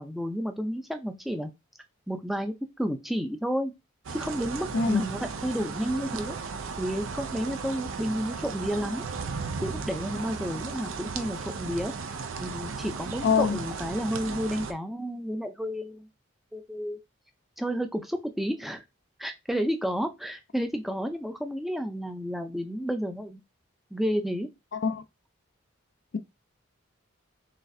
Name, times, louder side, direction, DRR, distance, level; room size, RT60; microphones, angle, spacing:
voice 1, 0.0-1.5 2.1-3.7 4.1-6.4 6.8-9.1 9.6-11.9 12.4-16.1 16.5-17.0 17.6-18.8 19.2-23.4 23.9-24.5, equal, ahead, 0.4 m, -31 dB
sound 1, 4.0-14.7, right 4 dB, 70° right, 0.5 m, -36 dB
voice 2, 4.7-5.0 13.2-13.6 24.7-25.0, left 5 dB, 55° left, 0.4 m, -24 dB
4.0 x 3.4 x 2.6 m
head